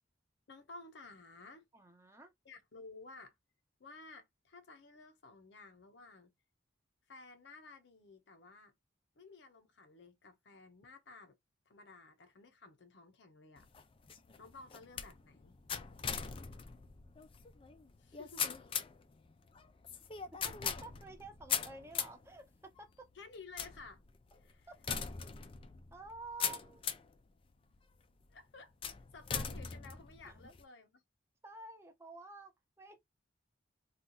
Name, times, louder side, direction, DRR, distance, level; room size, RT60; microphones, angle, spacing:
voice 1, 0.5-1.7 2.4-3.4 3.8-6.3 7.1-8.7 9.2-11.4 11.7-13.7 14.4-15.6 18.0-18.6 23.1-24.0 24.4-24.7 28.3-28.7 29.1-31.0, left 3 dB, 65° left, 0.6 m, -54 dB
voice 2, 1.7-2.3 20.4-23.1 24.7-25.0 25.9-26.8 30.2-30.4 31.4-33.0, right 2 dB, 15° right, 0.7 m, -51 dB
sound 1, 13.6-27.2 27.7-28.2 28.8-30.6, left 7 dB, 30° left, 0.4 m, -41 dB
2.8 x 2.3 x 3.7 m
head